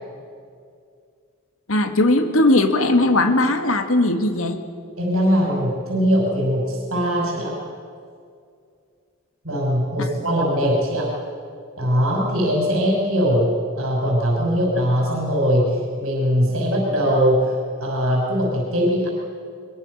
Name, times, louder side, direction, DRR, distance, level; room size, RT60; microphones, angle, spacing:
voice 1, 1.7-4.6, left 2 dB, 65° left, 6 dB, 1.9 m, -18 dB
voice 2, 5.0-7.6 9.4-11.1 11.8-19.1, equal, 65° right, -3 dB, 5.9 m, -21 dB
23.0 x 23.0 x 6.6 m, 2.3 s
head